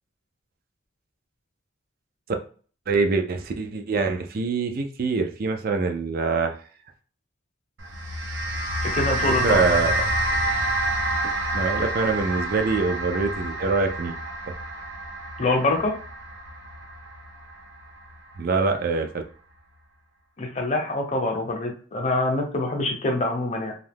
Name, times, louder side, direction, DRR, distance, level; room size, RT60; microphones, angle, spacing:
voice 1, 2.9-6.6 9.4-9.9 11.5-14.2 18.4-19.1, right 4 dB, 50° right, 6 dB, 0.4 m, -24 dB
sound 1, 7.8-18.3, right 1 dB, 80° right, 0.8 m, -28 dB
voice 2, 8.8-9.6 15.4-16.0 20.4-23.7, left 2 dB, 35° left, 2 dB, 0.7 m, -25 dB
2.6 x 2.4 x 3.4 m, 0.42 s
head